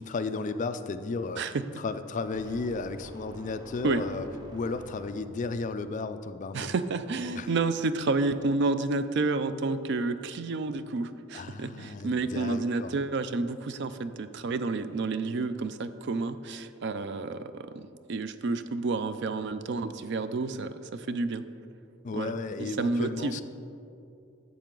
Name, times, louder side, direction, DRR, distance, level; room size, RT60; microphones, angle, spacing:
voice 1, 0.0-6.7 7.3-7.5 11.3-12.9 22.0-23.4, left 3 dB, 35° left, 10 dB, 0.3 m, -34 dB
sound 1, 2.3-5.6, equal, 20° right, 0.8 m, -47 dB
voice 2, 6.5-17.8 18.1-21.4 22.1-22.3 22.8-23.4, right 3 dB, 55° right, 12 dB, 0.4 m, -30 dB
11.5 x 7.4 x 3.8 m, 2.7 s
head